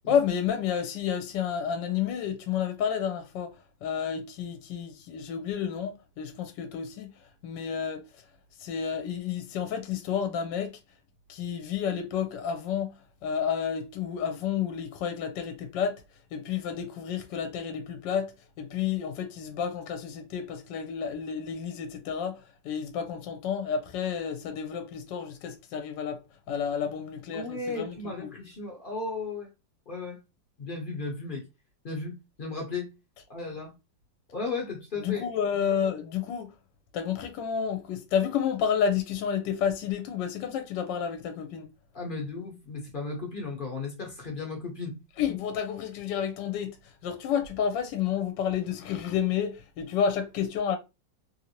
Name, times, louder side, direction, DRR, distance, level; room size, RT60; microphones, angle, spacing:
voice 1, 0.1-8.1 8.6-10.8 11.3-16.0 16.3-26.2 26.5-28.3 35.0-36.5 36.9-41.7 45.2-50.8, left 8 dB, 75° left, 1.2 m, -30 dB
voice 2, 27.3-29.5 29.9-30.2 30.6-31.4 31.8-32.9 33.3-33.7 34.3-35.3 41.9-45.0, left 3 dB, 50° left, 0.6 m, -35 dB
3.0 x 2.6 x 2.8 m
omnidirectional pair, 2.0 m